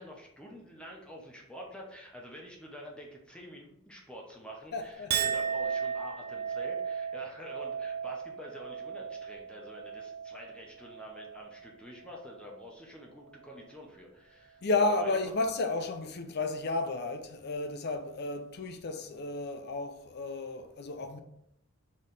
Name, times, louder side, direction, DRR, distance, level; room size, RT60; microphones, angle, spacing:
voice 1, 0.0-15.1, equal, 5° left, 0.7 m, -47 dB
voice 2, 4.7-5.3 14.6-21.2, left 3 dB, 55° left, 0.5 m, -32 dB
Chink clink, 5.1-11.7 12.0-12.6, right 7 dB, 50° right, 0.3 m, -36 dB
4.2 x 3.1 x 3.8 m
head